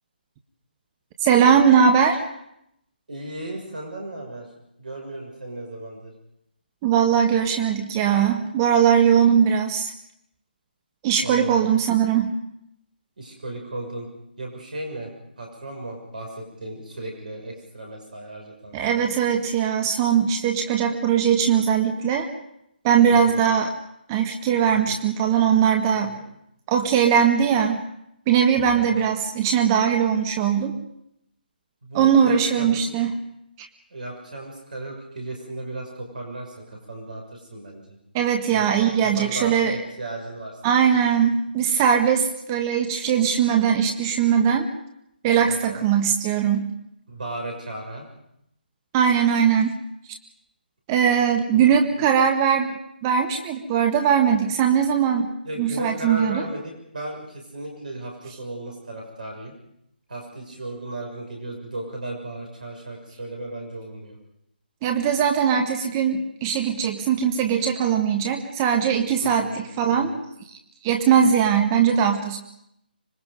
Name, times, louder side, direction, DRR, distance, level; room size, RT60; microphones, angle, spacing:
voice 1, 1.2-2.2 6.8-9.9 11.0-12.3 18.7-22.3 22.8-23.7 24.1-26.1 26.7-27.8 28.3-30.7 31.9-33.1 33.6-33.7 38.1-39.8 40.6-44.7 45.2-46.7 48.9-49.8 50.9-52.7 53.0-55.3 55.6-56.4 64.8-70.2 70.8-72.4, right 8 dB, 20° right, 4 dB, 1.5 m, -20 dB
voice 2, 3.1-4.5 4.8-6.1 11.2-11.7 13.2-14.1 14.4-15.1 15.4-19.0 23.1-23.4 24.7-25.0 26.0-26.2 28.7-29.1 31.8-32.8 33.9-38.0 38.5-40.8 45.5-45.8 47.1-48.1 51.5-51.8 55.4-59.5 60.1-64.2 69.2-69.6 69.9-70.2, right 2 dB, 55° right, 1 dB, 6.5 m, -35 dB
25.5 x 21.5 x 5.3 m, 0.77 s
figure-of-eight pair, 145°, 5 cm